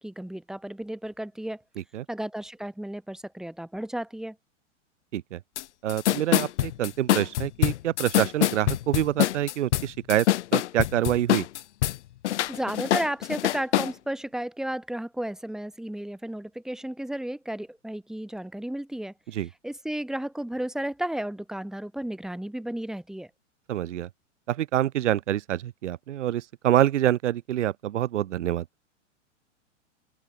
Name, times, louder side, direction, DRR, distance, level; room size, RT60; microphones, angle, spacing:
voice 1, 0.0-1.6 2.1-4.4 12.5-23.3, right 1 dB, ahead, 1.2 m, -33 dB
sound 1, 5.6-5.7 5.9-12.0 12.2-13.9, left 13 dB, 65° left, 0.7 m, -24 dB
voice 2, 5.8-10.3 10.5-11.5 19.3-19.5 23.7-24.1 24.5-28.6, right 12 dB, 75° right, 0.7 m, -26 dB
hypercardioid pair, 105°, 37 cm